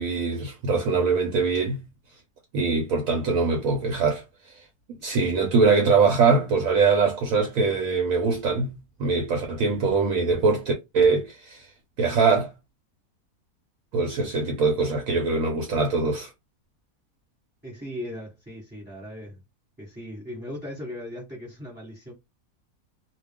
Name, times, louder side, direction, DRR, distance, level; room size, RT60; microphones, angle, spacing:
voice 1, 0.0-1.8 2.5-4.2 5.0-11.7 12.0-12.5 13.9-16.3, right 4 dB, 65° right, 1.0 m, -22 dB
voice 2, 17.6-19.4 19.8-22.1, left 1 dB, 5° right, 1.1 m, -38 dB
2.4 x 2.3 x 3.4 m
omnidirectional pair, 1.7 m